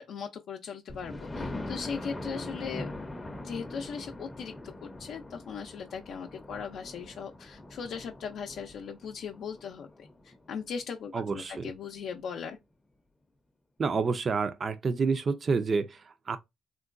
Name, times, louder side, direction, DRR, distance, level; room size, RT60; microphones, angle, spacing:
voice 1, 0.0-2.9 3.4-4.5 4.8-12.6, left 6 dB, 70° left, 0.4 m, -39 dB
Thunder, 0.9-10.6 11.2-11.3 11.7-11.8 12.0-12.1, left 2 dB, 15° left, 0.5 m, -42 dB
voice 2, 11.1-11.7 13.8-16.4, right 4 dB, 45° right, 0.4 m, -29 dB
3.7 x 2.1 x 2.5 m
cardioid pair, 90°, 0 cm